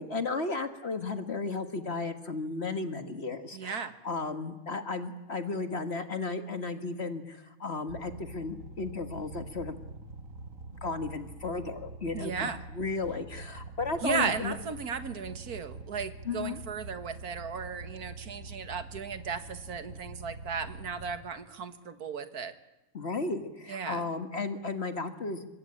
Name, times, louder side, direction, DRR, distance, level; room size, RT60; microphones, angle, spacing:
voice 1, 0.0-9.8 10.8-14.5 16.2-16.6 22.9-25.5, left 3 dB, 45° left, 8 dB, 1.7 m, -34 dB
voice 2, 3.5-3.9 12.1-12.6 14.0-22.5 23.7-24.1, right 6 dB, 85° right, 10 dB, 2.0 m, -35 dB
sound 1, 7.9-21.2, right 2 dB, 60° right, 2.1 m, -45 dB
25.0 x 22.0 x 8.7 m, 0.98 s
omnidirectional pair, 1.5 m